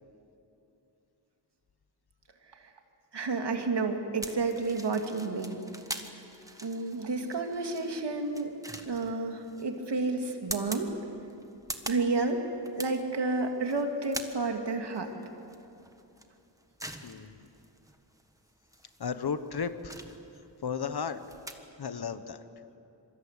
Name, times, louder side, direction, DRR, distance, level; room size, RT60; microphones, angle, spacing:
voice 1, 3.1-5.6 6.6-8.5 8.9-10.9 11.9-12.4 12.8-15.1, right 3 dB, 65° right, 4 dB, 2.6 m, -30 dB
sound 1, 4.2-21.5, right 1 dB, 5° right, 1.4 m, -44 dB
voice 2, 17.0-17.5 19.0-19.9 20.6-21.2 21.8-22.4, left 6 dB, 55° left, 11 dB, 1.2 m, -34 dB
26.5 x 24.5 x 8.3 m, 2.8 s
wide cardioid pair, 160°, 44 cm